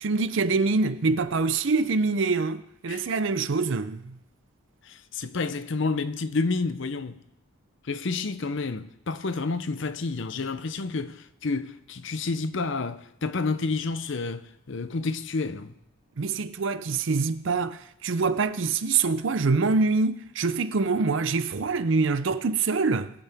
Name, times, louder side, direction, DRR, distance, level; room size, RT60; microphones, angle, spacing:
voice 1, 0.0-4.2 16.2-23.1, right 4 dB, 60° right, 0.5 m, -25 dB
voice 2, 4.8-7.2 7.8-15.7, left 3 dB, 55° left, 0.6 m, -30 dB
21.0 x 8.3 x 3.5 m
head